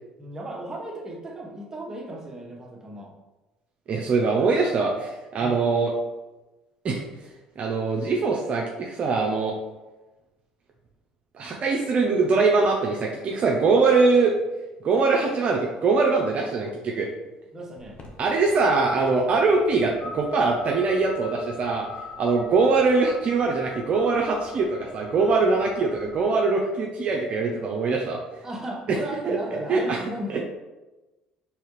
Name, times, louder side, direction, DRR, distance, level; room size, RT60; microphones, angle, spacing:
voice 1, 0.2-3.1 17.5-18.0 28.4-30.4, right 1 dB, 20° right, -1 dB, 1.2 m, -35 dB
voice 2, 3.9-5.9 6.8-7.0 7.6-9.5 11.4-14.3 14.8-17.1 18.2-21.9 22.2-28.2 29.3-29.4 29.7-30.0 30.3-30.4, right 4 dB, 50° right, 0 dB, 0.6 m, -22 dB
sound 1, 17.8-26.2, left 3 dB, 45° left, 0.9 m, -43 dB
4.6 x 3.2 x 3.2 m, 1.1 s
supercardioid pair, 75°, 3 cm